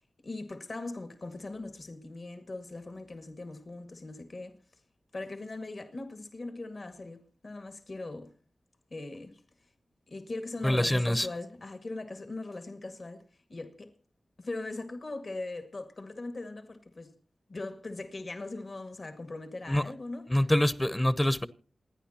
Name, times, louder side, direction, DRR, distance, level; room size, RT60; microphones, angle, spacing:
voice 1, 0.2-4.6 5.1-8.3 8.9-9.4 10.1-13.2 13.5-13.9 14.4-17.1 17.5-20.3, left 2 dB, 55° left, 2.0 m, -40 dB
voice 2, 10.6-11.3 19.7-19.8 20.3-21.5, left 1 dB, 20° left, 0.8 m, -25 dB
27.5 x 10.0 x 2.9 m
cardioid pair, 45°, 0 cm